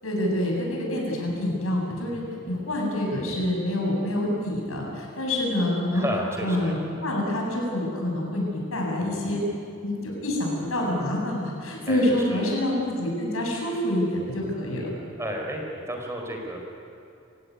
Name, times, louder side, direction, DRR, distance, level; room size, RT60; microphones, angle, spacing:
voice 1, 0.0-6.1 6.4-9.4 9.8-14.9, left 1 dB, 80° left, -1 dB, 7.9 m, -27 dB
voice 2, 5.9-6.8 11.9-12.5 15.2-15.6 15.9-16.6, right 1 dB, 15° right, 1 dB, 4.5 m, -31 dB
28.0 x 17.0 x 9.8 m, 2.7 s
head